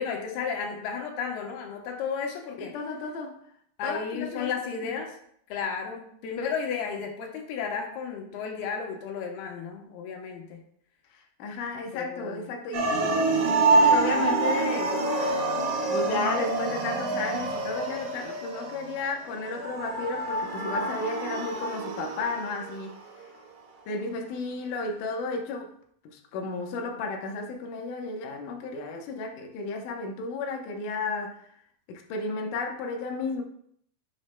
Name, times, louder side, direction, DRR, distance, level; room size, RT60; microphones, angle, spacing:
voice 1, 0.0-2.7 3.8-5.1 5.5-10.6 11.9-12.6, left 6 dB, 75° left, 2 dB, 2.5 m, -33 dB
voice 2, 2.6-3.4 3.8-4.8 11.4-13.2 13.7-15.0 15.9-23.0 23.9-25.7 26.0-31.4 31.9-33.4, left 3 dB, 90° left, 1 dB, 1.8 m, -33 dB
sound 1, 12.7-22.8, right 3 dB, 75° right, 1.7 m, -26 dB
10.5 x 6.5 x 2.2 m, 0.66 s
omnidirectional pair, 5.2 m